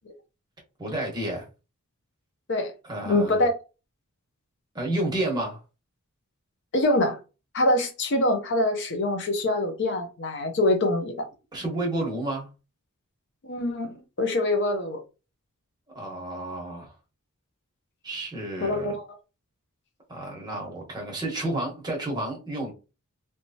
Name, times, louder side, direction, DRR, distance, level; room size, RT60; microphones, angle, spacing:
voice 1, 0.8-1.5 2.8-3.4 4.7-5.6 11.5-12.5 15.9-16.9 18.0-18.9 20.1-22.7, right 1 dB, 20° right, 1.1 m, -30 dB
voice 2, 3.0-3.5 6.7-7.2 7.5-11.2 13.4-15.0 18.6-19.0, left 1 dB, 50° left, 0.6 m, -24 dB
3.2 x 3.0 x 2.7 m
head